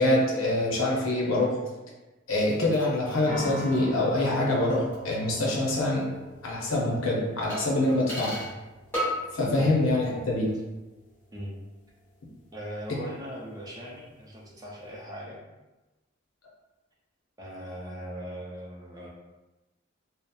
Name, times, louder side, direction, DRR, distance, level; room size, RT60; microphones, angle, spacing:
voice 1, 0.0-1.6 2.3-6.1 6.4-8.4 9.3-10.5, left 1 dB, 85° left, -3 dB, 0.7 m, -25 dB
sound 1, 2.3-5.7 6.0-6.1 7.5-8.6 8.9-9.4 9.6-10.2 10.5-10.6, equal, 10° left, 0.9 m, -37 dB
sound 2, 3.3-15.0, equal, 40° left, 0.5 m, -45 dB
voice 2, 12.5-15.4 17.4-19.1, equal, 20° right, -4 dB, 0.4 m, -39 dB
2.8 x 2.0 x 2.3 m, 1.1 s
head